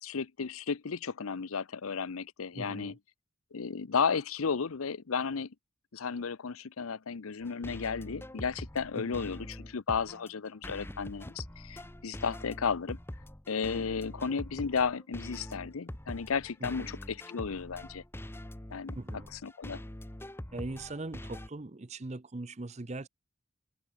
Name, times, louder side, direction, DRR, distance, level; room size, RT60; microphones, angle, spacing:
voice 1, 0.0-3.0 3.5-5.5 5.9-13.0 13.5-18.0 18.7-19.0 19.3-19.8, left 5 dB, 90° left, 0.7 m, -33 dB
voice 2, 2.5-3.0 8.9-9.2 16.6-16.9 18.9-19.3 20.5-23.1, right 2 dB, 30° right, 0.7 m, -40 dB
sound 1, 7.4-21.5, left 1 dB, 10° left, 1.2 m, -44 dB
head